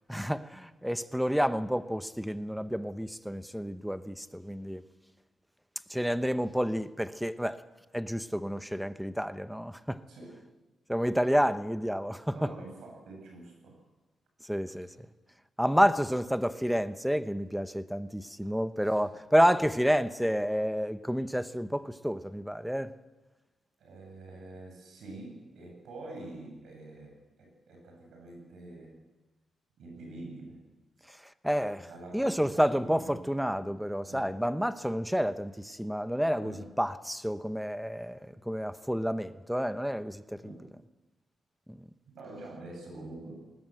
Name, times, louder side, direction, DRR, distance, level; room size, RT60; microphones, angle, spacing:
voice 1, 0.1-4.8 5.9-7.6 7.9-10.0 10.9-12.5 14.4-14.9 15.6-22.9 31.4-31.9 32.1-40.5 41.7-41.8, equal, ahead, 1.0 m, -29 dB
voice 2, 10.1-10.4 12.3-13.8 14.8-14.9 18.9-19.1 23.8-29.0 29.8-30.6 31.9-33.2 34.0-34.3 36.4-36.7 40.4-40.7 42.1-43.3, right 2 dB, 80° right, 7.7 m, -46 dB
20.0 x 19.5 x 7.9 m
cardioid pair, 80°, 0 cm